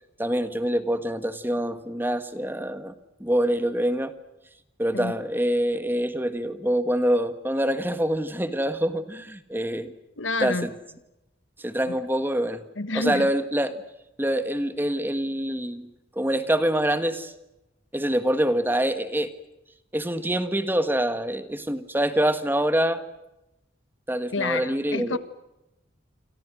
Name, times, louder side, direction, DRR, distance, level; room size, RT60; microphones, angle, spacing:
voice 1, 0.2-2.9 3.2-4.1 4.8-9.9 10.4-10.7 11.6-12.6 12.9-13.8 14.2-15.9 16.1-17.3 17.9-19.3 19.9-23.0 24.1-25.2, right 1 dB, 10° right, 11 dB, 1.4 m, -25 dB
voice 2, 10.2-10.7 11.9-12.0 12.8-13.3 24.3-25.2, left 3 dB, 80° left, 13 dB, 1.7 m, -29 dB
28.5 x 26.5 x 6.2 m, 0.93 s
head